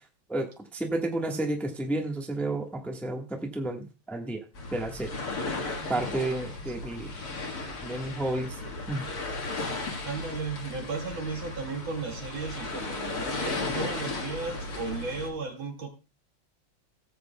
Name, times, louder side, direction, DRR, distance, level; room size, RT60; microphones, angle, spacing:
voice 1, 0.3-4.4 4.7-5.1 5.9-7.1 7.8-8.6 8.9-9.0, right 2 dB, ahead, 2 dB, 1.0 m, -31 dB
sound 1, 4.5-15.3, left 2 dB, 50° left, 2.1 m, -35 dB
voice 2, 10.0-15.9, right 4 dB, 80° right, 1 dB, 2.9 m, -35 dB
17.5 x 7.8 x 2.3 m, 0.30 s
omnidirectional pair, 2.2 m